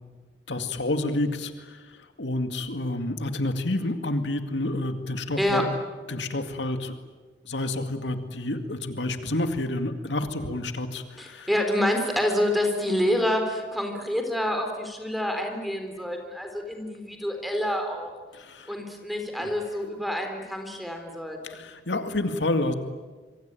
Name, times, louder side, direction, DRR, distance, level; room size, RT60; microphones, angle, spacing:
voice 1, 0.5-5.7 6.1-7.0 7.5-11.5 18.3-18.7 19.4-19.5 21.4-22.7, left 2 dB, 85° left, 7 dB, 2.2 m, -29 dB
voice 2, 5.4-5.7 11.2-18.1 18.7-21.6, left 1 dB, ahead, 4 dB, 3.9 m, -27 dB
26.5 x 23.5 x 9.1 m, 1.4 s
head